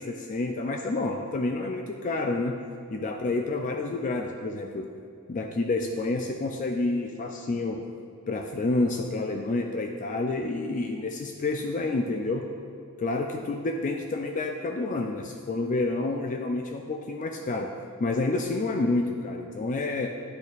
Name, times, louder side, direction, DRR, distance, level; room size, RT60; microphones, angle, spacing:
voice 1, 0.0-2.5 2.9-4.9 5.3-7.8 8.3-12.4 13.0-17.7 18.0-20.1, left 2 dB, 35° left, 3 dB, 0.4 m, -29 dB
9.7 x 6.7 x 2.4 m, 2.5 s
head